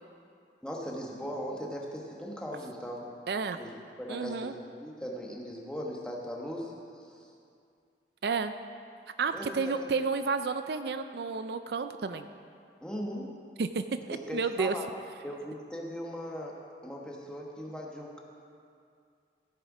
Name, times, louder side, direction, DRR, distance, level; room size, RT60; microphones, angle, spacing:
voice 1, 0.6-3.1 3.6-6.7 7.0-7.3 9.3-9.9 12.8-13.4 14.1-14.9 15.2-18.2, equal, 5° left, -2 dB, 1.2 m, -39 dB
voice 2, 3.3-3.6 4.1-4.5 8.2-8.5 9.2-12.3 13.6-13.8 14.1-14.7, right 4 dB, 70° right, 9 dB, 0.4 m, -31 dB
16.0 x 6.7 x 4.9 m, 2.4 s
head